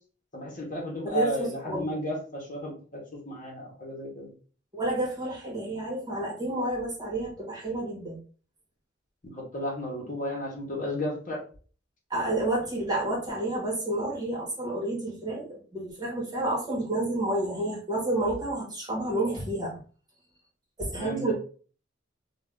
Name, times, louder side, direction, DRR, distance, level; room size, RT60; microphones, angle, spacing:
voice 1, 0.3-4.3 9.2-11.4 20.9-21.3, left 1 dB, 45° left, -2 dB, 1.0 m, -33 dB
voice 2, 1.1-1.9 4.7-8.2 12.1-19.7 20.8-21.3, right 1 dB, 20° right, -4 dB, 1.2 m, -30 dB
2.7 x 2.3 x 3.4 m, 0.40 s
head